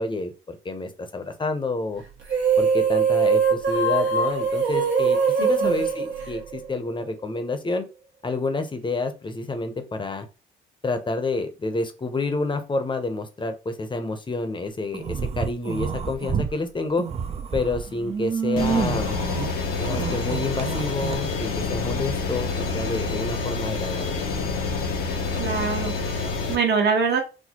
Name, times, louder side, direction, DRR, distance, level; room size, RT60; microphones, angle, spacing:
voice 1, 0.0-2.0 2.6-7.9 8.2-10.3 10.8-17.0 17.5-19.2 19.8-24.1, left 3 dB, 25° left, 7 dB, 0.7 m, -29 dB
sound 1, 2.2-6.9, right 5 dB, 75° right, 1.3 m, -22 dB
voice 2, 5.4-5.9 25.4-27.2, right 5 dB, 55° right, 2 dB, 1.2 m, -25 dB
sound 2, 14.9-16.5 16.9-21.2, right 6 dB, 30° right, 0.4 m, -29 dB
sound 3, 18.6-26.6, left 4 dB, 85° left, 0.8 m, -27 dB
4.2 x 2.2 x 2.9 m, 0.30 s
cardioid pair, 90°, 20 cm